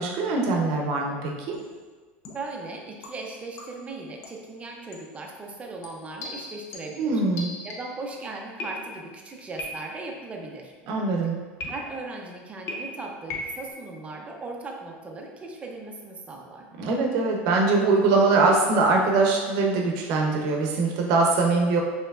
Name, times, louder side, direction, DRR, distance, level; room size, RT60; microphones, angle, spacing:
voice 1, 0.0-1.6 7.0-7.5 10.9-11.4 16.8-21.8, right 3 dB, 60° right, 0 dB, 0.7 m, -22 dB
sound 1, 1.5-1.8 2.2-2.6 3.0-3.9 4.2-4.5 4.9-5.2 5.8-8.1 8.6-9.2 9.6-10.1 11.6-12.2 12.7-13.7, left 2 dB, 50° left, 0.7 m, -38 dB
voice 2, 2.3-7.2 7.6-10.7 11.7-16.7, right 3 dB, 20° right, 1 dB, 0.5 m, -38 dB
4.5 x 2.9 x 2.4 m, 1.4 s
supercardioid pair, 120°, 6 cm